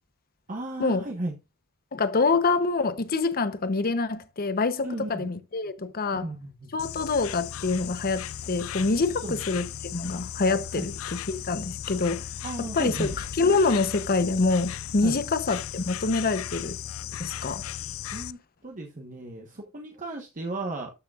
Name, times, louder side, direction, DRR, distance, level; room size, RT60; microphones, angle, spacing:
voice 1, 0.5-1.3 4.8-5.3 6.2-6.7 9.2-9.4 10.8-10.9 12.4-13.1 15.0-15.2 18.1-18.4 18.6-20.9, right 2 dB, 40° right, 1.2 m, -34 dB
voice 2, 1.9-6.3 6.7-12.2 12.6-16.8 17.2-17.6, left 3 dB, 45° left, 0.8 m, -26 dB
Insect, 6.8-18.3, left 10 dB, 75° left, 0.4 m, -36 dB
13.0 x 6.6 x 2.4 m
head